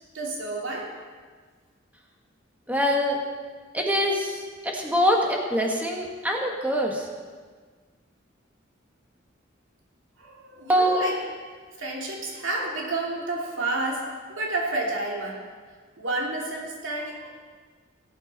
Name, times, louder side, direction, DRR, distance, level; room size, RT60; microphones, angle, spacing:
voice 1, 0.1-0.9 10.2-11.2 11.8-15.4 16.0-17.4, right 2 dB, 75° right, -2 dB, 2.7 m, -30 dB
voice 2, 2.7-3.2 3.7-7.1 10.7-11.0, equal, 10° right, 0 dB, 1.5 m, -24 dB
18.0 x 8.1 x 4.1 m, 1.5 s
head